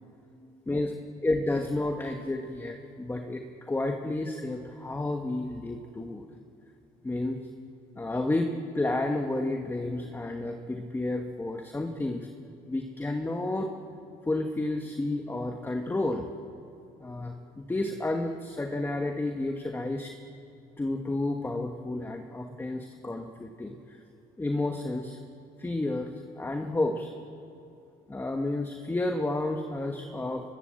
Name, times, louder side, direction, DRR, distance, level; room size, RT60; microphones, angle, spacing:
voice 1, 1.2-6.2 7.0-7.5 8.0-12.3 12.7-13.7 14.2-16.3 17.0-20.1 20.8-24.0 24.4-25.2 25.6-27.1 28.1-30.5, left 2 dB, 15° left, 4 dB, 1.4 m, -31 dB
27.0 x 20.5 x 7.7 m, 2.7 s
cardioid pair, 110°, 17 cm